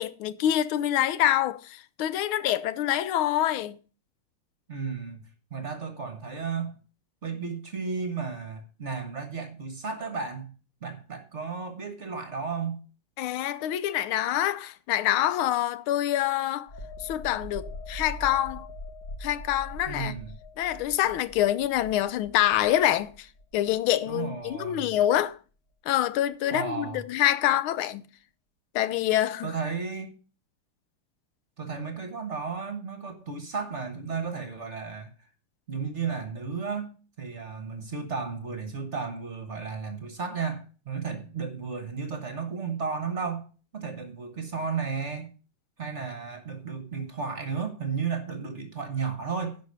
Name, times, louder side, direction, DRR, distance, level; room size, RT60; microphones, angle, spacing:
voice 1, 0.0-3.8 13.2-16.7 17.0-18.7 19.2-20.1 20.6-23.3 23.5-25.4 25.9-28.0 28.7-29.5, left 12 dB, 80° left, 1.5 m, -26 dB
voice 2, 4.7-5.2 5.5-6.8 7.2-10.5 10.8-12.8 19.8-20.4 24.1-24.9 26.5-27.0 29.4-30.2 31.6-35.3 35.7-43.5 43.7-45.3 45.8-49.6, right 5 dB, 40° right, 1.2 m, -33 dB
sound 1, 16.7-24.1 24.5-24.7, left 1 dB, 55° left, 2.1 m, -42 dB
11.5 x 5.1 x 6.7 m
omnidirectional pair, 2.4 m